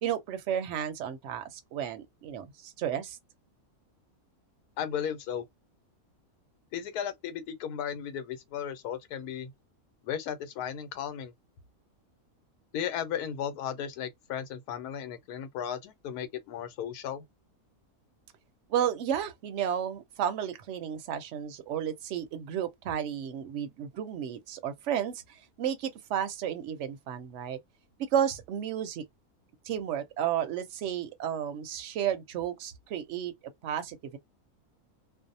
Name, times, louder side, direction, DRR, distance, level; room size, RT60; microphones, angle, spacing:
voice 1, 0.0-3.2 18.7-25.2 25.6-27.6 28.1-29.0 29.6-33.3 33.6-34.2, right 9 dB, 65° right, 0.8 m, -32 dB
voice 2, 4.8-5.5 6.7-9.5 10.0-11.3 12.7-17.2, left 9 dB, 85° left, 1.1 m, -35 dB
2.6 x 2.0 x 2.6 m
omnidirectional pair, 1.6 m